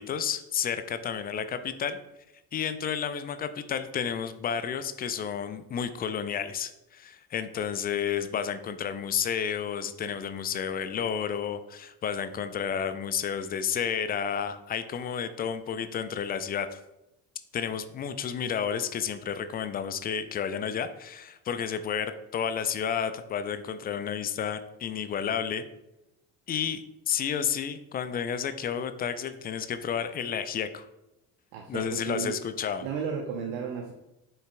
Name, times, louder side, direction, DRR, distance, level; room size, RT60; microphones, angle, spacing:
voice 1, 0.0-2.0 2.5-16.8 17.5-25.7 26.5-30.9 31.7-32.9, left 7 dB, 20° left, 11 dB, 0.4 m, -31 dB
voice 2, 31.5-32.4 32.8-33.9, right 6 dB, 55° right, 4 dB, 0.9 m, -33 dB
8.4 x 6.4 x 2.2 m, 0.90 s
figure-of-eight pair, 55°, 50 cm